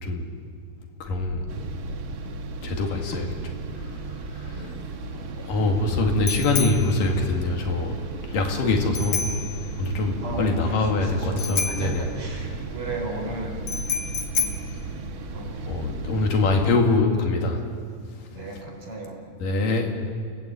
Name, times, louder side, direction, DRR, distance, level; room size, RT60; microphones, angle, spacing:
voice 1, 1.0-1.6 2.6-3.9 4.3-4.6 5.4-7.9 8.3-9.3 9.8-12.0 15.7-17.6 19.4-20.0, left 3 dB, 75° left, 2 dB, 3.8 m, -24 dB
sound 1, 1.0-16.7, left 1 dB, 5° right, 4.4 m, -39 dB
sound 2, 1.5-16.8, right 5 dB, 75° right, 1.2 m, -37 dB
voice 2, 4.5-4.9 10.2-13.6 14.3-15.0 15.3-15.6 18.3-19.2, right 2 dB, 40° right, 2 dB, 4.1 m, -36 dB
Bicycle bell, 4.6-15.7, left 5 dB, 45° left, 1.7 m, -33 dB
29.0 x 17.5 x 8.4 m, 2.3 s
omnidirectional pair, 4.0 m